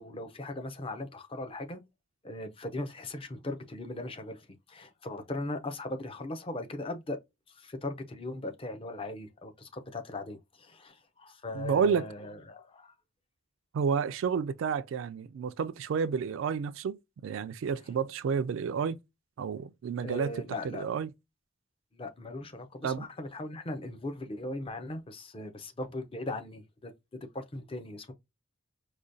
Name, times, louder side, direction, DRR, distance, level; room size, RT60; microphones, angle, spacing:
voice 1, 0.0-1.8 2.2-7.2 7.5-12.9 20.0-20.8 21.9-26.9 27.3-28.1, left 2 dB, 25° left, 0.6 m, -39 dB
voice 2, 11.5-12.1 13.7-19.0 19.4-20.3 20.6-21.1 22.8-23.1, right 6 dB, 65° right, 0.3 m, -30 dB
4.8 x 2.2 x 2.6 m
head